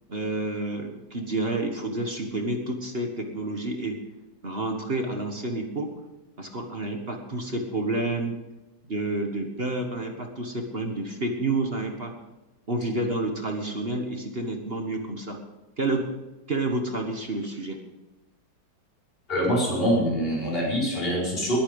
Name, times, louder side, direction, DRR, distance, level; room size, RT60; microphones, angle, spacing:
voice 1, 0.1-4.0 4.4-5.9 6.4-8.4 8.9-12.1 12.7-15.4 15.8-16.0 16.5-17.8, right 2 dB, 35° right, 3 dB, 1.5 m, -29 dB
voice 2, 19.3-21.6, equal, 30° left, -5 dB, 5.2 m, -24 dB
21.0 x 9.0 x 5.4 m, 1.1 s
omnidirectional pair, 2.0 m